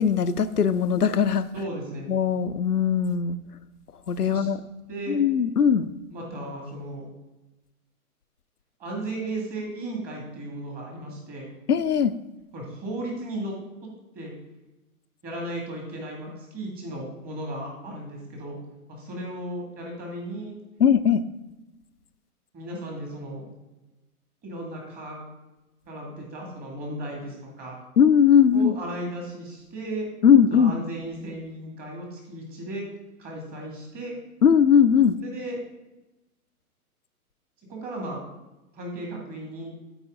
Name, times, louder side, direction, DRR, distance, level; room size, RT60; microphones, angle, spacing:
voice 1, 0.0-1.5 2.1-3.4 4.1-4.6 5.1-5.9 11.7-12.1 20.8-21.2 28.0-28.7 30.2-30.7 34.4-35.1, left 7 dB, 90° left, 13 dB, 0.5 m, -19 dB
voice 2, 1.5-2.1 4.2-4.5 4.9-5.2 6.1-7.1 8.8-11.5 12.5-13.5 13.8-14.3 15.2-18.6 18.9-20.6 22.5-23.5 24.4-25.2 25.9-27.8 28.5-30.1 30.5-32.9 33.2-34.2 35.2-35.6 37.7-38.2 38.7-39.7, right 1 dB, 20° right, -1 dB, 2.1 m, -35 dB
12.0 x 4.9 x 3.7 m, 1.1 s
figure-of-eight pair, 120°, 45 cm